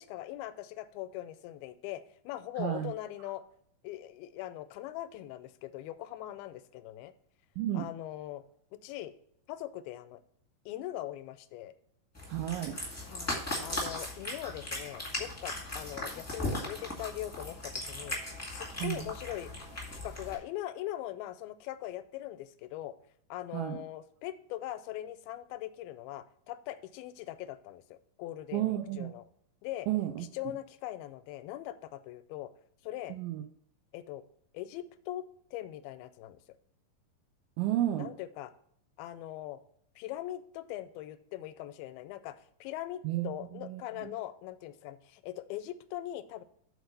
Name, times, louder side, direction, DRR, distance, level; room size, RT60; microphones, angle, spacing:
voice 1, 0.0-3.4 3.8-7.1 7.7-8.4 8.7-9.1 9.5-10.2 10.7-11.7 13.1-18.2 18.5-19.5 19.9-22.9 23.3-29.2 29.6-29.9 30.3-32.5 32.8-33.2 33.9-34.2 34.5-35.3 35.5-36.4 38.0-38.5 39.0-39.6 40.0-46.4, left 14 dB, 90° left, 13 dB, 2.4 m, -41 dB
voice 2, 2.6-2.9 7.6-7.9 12.3-12.8 18.8-19.1 23.5-23.8 28.5-29.1 29.9-30.3 33.1-33.4 37.6-38.1 43.0-44.1, right 13 dB, 80° right, 5 dB, 2.1 m, -32 dB
Cat, 12.1-20.3, left 1 dB, 15° left, 0.6 m, -38 dB
6.9 x 4.5 x 6.6 m, 0.68 s
omnidirectional pair, 4.2 m